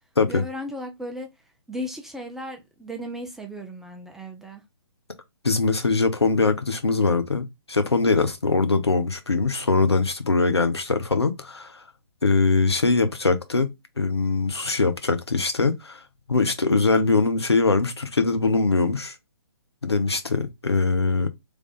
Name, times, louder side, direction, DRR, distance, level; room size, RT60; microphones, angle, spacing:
voice 1, 0.3-1.3 1.7-4.6, equal, ahead, 0.4 m, -35 dB
voice 2, 5.4-11.8 12.2-13.7 14.0-16.0 16.3-19.1 19.8-21.3, left 3 dB, 80° left, 1.1 m, -22 dB
3.5 x 3.3 x 3.9 m
figure-of-eight pair, 135°, 14 cm